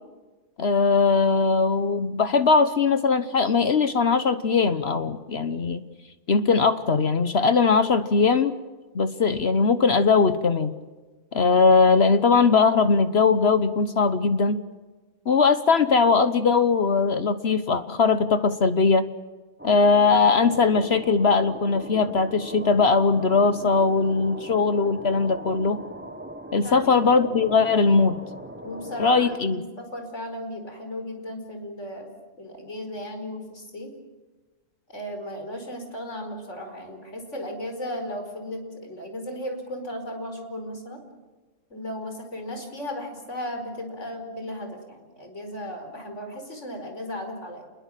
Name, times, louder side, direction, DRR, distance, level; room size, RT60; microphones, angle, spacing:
voice 1, 0.6-5.8 6.3-8.5 8.9-10.7 11.3-14.6 15.3-19.1 19.6-25.8 26.5-28.2 29.0-29.6, left 4 dB, 60° left, 11 dB, 1.3 m, -20 dB
sound 1, 19.6-29.4, right 1 dB, 10° right, 1.8 m, -39 dB
voice 2, 26.6-27.3 28.6-32.1 32.4-33.9 34.9-41.0 41.7-47.7, left 1 dB, 90° left, 5 dB, 5.2 m, -35 dB
28.5 x 21.5 x 7.6 m, 1.2 s
omnidirectional pair, 1.2 m